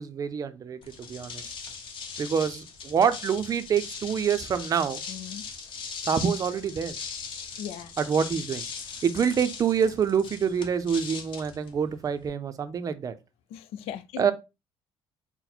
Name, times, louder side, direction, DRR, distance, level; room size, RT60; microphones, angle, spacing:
voice 1, 0.0-1.5 2.2-5.0 6.0-6.9 8.0-8.6 9.0-13.1 14.2-14.3, right 7 dB, 35° right, 0.5 m, -26 dB
sound 1, 0.8-12.3, left 5 dB, 55° left, 1.0 m, -39 dB
voice 2, 5.1-5.4 7.6-7.9 13.5-14.2, left 10 dB, 75° left, 0.4 m, -38 dB
4.1 x 2.1 x 4.2 m
cardioid pair, 110°, 10 cm